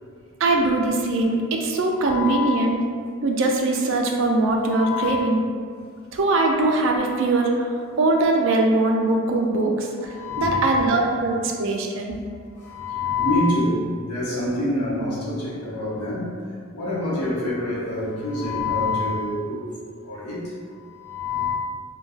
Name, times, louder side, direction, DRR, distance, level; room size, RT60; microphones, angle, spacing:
voice 1, 0.4-2.9 3.2-5.4 6.1-12.2, right 2 dB, 55° right, 1 dB, 0.3 m, -21 dB
voice 2, 1.9-2.6 4.6-5.2 10.0-11.0 12.5-16.5 16.7-19.6 20.0-21.5, left 2 dB, 85° left, -7 dB, 0.8 m, -26 dB
3.6 x 2.2 x 2.3 m, 2.2 s
head